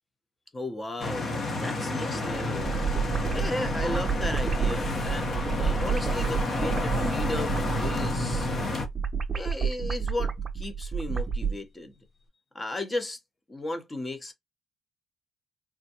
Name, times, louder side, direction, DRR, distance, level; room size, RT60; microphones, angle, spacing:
voice 1, 0.5-1.2 1.6-2.7 3.3-8.5 9.3-11.9 12.5-13.2 13.5-14.3, left 1 dB, 20° left, 0.8 m, -35 dB
sound 1, 1.0-8.9, left 2 dB, 50° left, 0.9 m, -30 dB
sound 2, 2.6-11.6, right 6 dB, 35° right, 0.5 m, -30 dB
3.5 x 2.1 x 2.8 m
cardioid pair, 90°, 0 cm